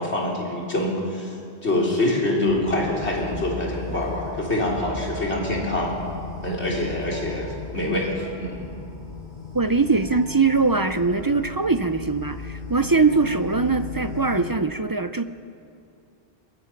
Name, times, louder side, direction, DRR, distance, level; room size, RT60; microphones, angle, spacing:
voice 1, 0.0-1.3 1.6-6.0 6.4-8.1 8.4-8.6, left 1 dB, 85° left, -3 dB, 4.1 m, -25 dB
sound 1, 2.4-14.5, left 4 dB, 40° left, 6.4 m, -36 dB
voice 2, 9.5-15.2, right 4 dB, 25° right, 10 dB, 0.5 m, -22 dB
22.0 x 21.0 x 6.0 m, 2.6 s
omnidirectional pair, 1.1 m